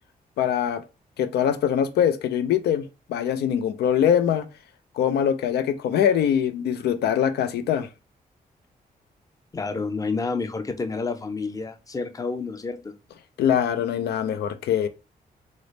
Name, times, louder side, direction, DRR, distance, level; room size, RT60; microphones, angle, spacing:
voice 1, 0.4-0.8 1.2-2.8 3.1-4.5 5.0-7.9 13.4-14.9, left 9 dB, 90° left, 0.4 m, -23 dB
voice 2, 9.5-12.9, left 4 dB, 20° left, 0.5 m, -29 dB
3.8 x 2.1 x 3.2 m
cardioid pair, 75°, 16 cm